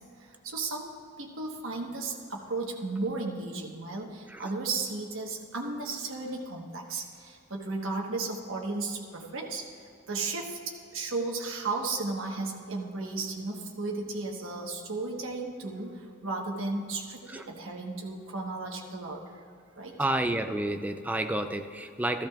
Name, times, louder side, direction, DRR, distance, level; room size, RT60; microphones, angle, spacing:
voice 1, 0.2-0.9 1.2-19.4 19.8-20.0, right 3 dB, 70° right, 0 dB, 1.2 m, -34 dB
voice 2, 20.0-22.3, right 1 dB, 10° right, 7 dB, 0.4 m, -30 dB
14.0 x 13.0 x 2.4 m, 2.4 s
head